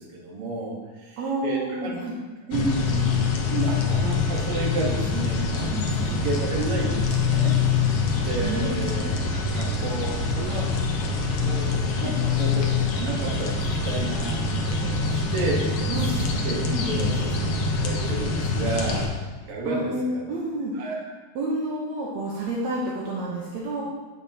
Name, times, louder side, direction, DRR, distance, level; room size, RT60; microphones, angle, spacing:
voice 1, 0.0-2.1 2.5-3.1 3.5-7.6 7.9-10.7 11.4-12.6 12.9-16.6 16.9-17.3 17.8-20.3 20.8-21.0, right 3 dB, 55° right, -3 dB, 1.9 m, -32 dB
voice 2, 1.2-2.2 2.5-2.6 5.7-6.2 8.4-9.0 9.5-9.7 12.0-12.2 15.9-16.1 16.7-17.1 19.7-20.7 21.4-23.8, right 1 dB, 70° right, -4 dB, 2.0 m, -30 dB
sound 1, 2.5-19.1, left 4 dB, 80° left, 1.2 m, -25 dB
8.0 x 7.0 x 2.8 m, 1.3 s
omnidirectional pair, 3.6 m